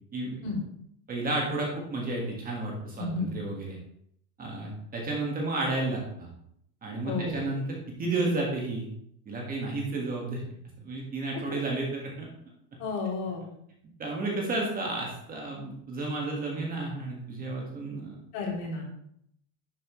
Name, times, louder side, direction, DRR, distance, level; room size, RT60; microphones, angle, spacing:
voice 1, 1.1-3.8 4.4-6.3 6.8-7.6 8.0-8.9 9.3-10.4 10.8-12.3 14.0-18.2, right 2 dB, 20° right, -2 dB, 1.7 m, -32 dB
voice 2, 3.0-3.4 7.0-7.4 11.3-11.6 12.8-13.4 18.3-18.9, left 3 dB, 55° left, -2 dB, 3.3 m, -32 dB
10.0 x 7.3 x 3.1 m, 0.72 s
supercardioid pair, 160°, 47 cm